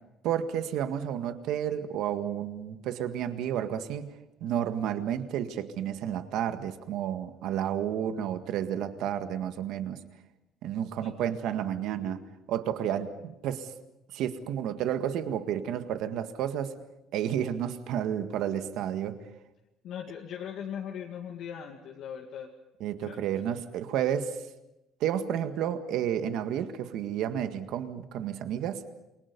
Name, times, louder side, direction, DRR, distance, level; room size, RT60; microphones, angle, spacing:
voice 1, 0.2-4.2 4.4-10.0 10.6-13.1 13.4-13.7 14.1-16.7 17.1-19.2 22.8-24.4 25.0-28.8, right 9 dB, 70° right, 8 dB, 1.8 m, -31 dB
voice 2, 19.8-22.5 23.1-23.2, left 8 dB, 60° left, 0 dB, 2.2 m, -39 dB
28.5 x 23.0 x 5.4 m, 0.91 s
cardioid pair, 160°, 0 cm